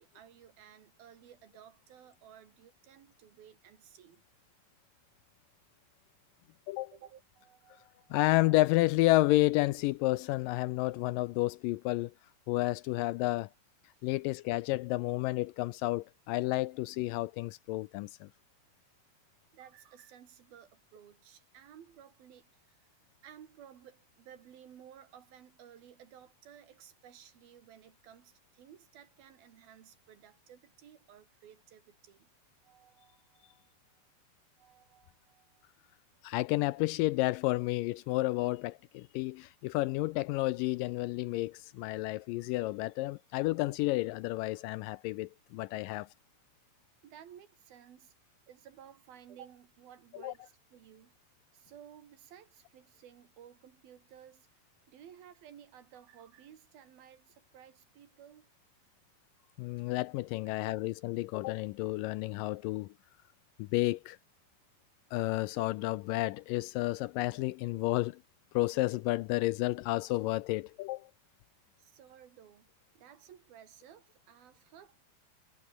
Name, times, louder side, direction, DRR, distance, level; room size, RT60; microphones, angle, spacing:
voice 1, 0.0-4.2 6.9-8.2 13.9-14.1 19.5-22.9 23.2-32.3 32.6-33.7 34.6-35.6 45.7-45.8 47.0-48.1 48.5-51.2 51.5-54.6 54.9-58.5 60.5-60.6 71.8-72.7 73.0-75.2, right 9 dB, 80° right, 4.2 m, -56 dB
voice 2, 8.1-12.1 12.5-13.5 14.0-18.3 36.2-46.1 50.2-50.3 59.6-62.9 63.6-64.2 65.1-68.2 68.6-71.1, left 19 dB, 80° left, 2.0 m, -31 dB
omnidirectional pair, 4.2 m